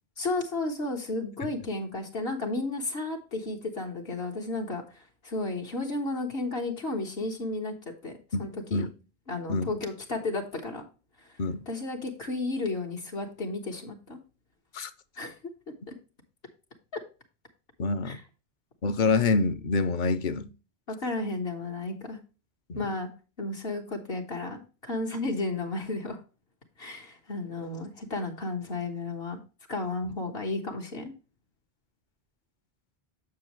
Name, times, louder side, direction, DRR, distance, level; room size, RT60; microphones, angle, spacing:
voice 1, 0.2-8.1 8.4-8.9 9.3-10.8 11.2-11.3 11.7-14.2 15.2-15.3 15.9-16.0 16.9-17.0 18.0-18.2 20.9-22.2 22.7-23.1 23.4-26.2 26.8-29.4 29.7-31.1, left 2 dB, 70° left, 1.6 m, -33 dB
voice 2, 8.3-8.9 9.5-9.7 11.4-11.7 14.7-14.9 17.8-18.2 18.8-20.5 22.7-22.8, left 4 dB, 55° left, 0.7 m, -26 dB
7.6 x 7.2 x 3.1 m
omnidirectional pair, 1.0 m